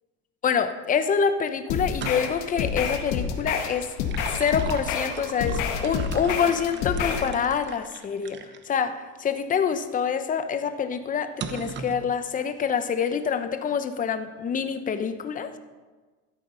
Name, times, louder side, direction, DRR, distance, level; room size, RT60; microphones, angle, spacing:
voice 1, 0.4-3.9 4.4-8.4 8.7-15.5, left 7 dB, 25° left, 9 dB, 0.9 m, -26 dB
sound 1, 1.7-7.3, left 7 dB, 60° left, 1.7 m, -28 dB
sound 2, 1.9-2.5 3.8-8.7 9.3-9.4 11.4-12.0, right 6 dB, 35° right, 0.9 m, -38 dB
13.0 x 8.1 x 5.6 m, 1.3 s
supercardioid pair, 125°, 33 cm